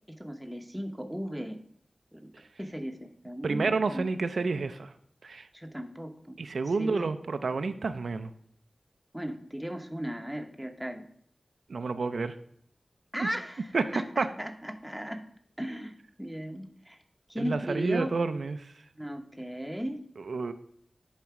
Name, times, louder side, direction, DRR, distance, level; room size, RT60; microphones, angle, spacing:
voice 1, 0.1-1.6 2.1-2.3 2.6-4.1 5.5-6.4 6.8-7.1 9.1-11.1 13.1-15.2 15.6-17.0 17.3-18.1 19.0-20.0, equal, 5° right, 5 dB, 0.8 m, -36 dB
voice 2, 3.4-4.9 5.2-5.5 6.4-8.3 11.7-12.3 13.7-14.3 17.4-18.7 20.3-20.5, right 4 dB, 85° right, 10 dB, 0.4 m, -29 dB
10.5 x 4.1 x 4.7 m, 0.64 s
wide cardioid pair, 80°, 0 cm